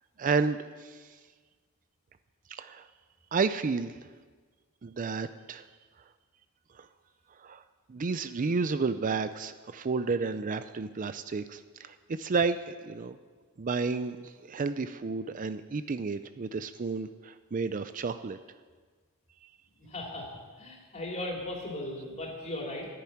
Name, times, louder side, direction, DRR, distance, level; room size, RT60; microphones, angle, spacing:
voice 1, 0.2-1.2 2.5-2.9 3.3-4.0 4.8-5.7 6.7-6.9 7.4-7.6 7.9-13.2 13.6-18.4 19.4-19.5, right 4 dB, 35° right, 11 dB, 0.4 m, -31 dB
voice 2, 19.8-20.3 20.6-22.9, left 1 dB, 30° left, -1 dB, 3.3 m, -37 dB
10.5 x 10.0 x 9.5 m, 1.5 s
head